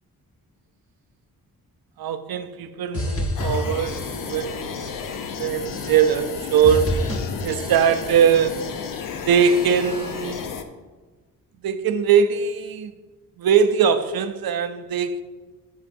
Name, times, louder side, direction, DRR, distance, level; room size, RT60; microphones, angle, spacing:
voice 1, 2.0-7.0 7.4-8.7 9.3-10.5 11.6-12.9 13.4-15.2, right 7 dB, 80° right, 0.6 m, -21 dB
sound 1, 2.9-4.5 4.8-5.3 5.7-6.3 6.6-8.2 8.5-9.0 9.4-10.0, left 1 dB, 40° left, 1.3 m, -30 dB
sound 2, 3.4-10.6, left 6 dB, 65° left, 0.7 m, -32 dB
11.5 x 6.3 x 2.6 m
wide cardioid pair, 125°, 35 cm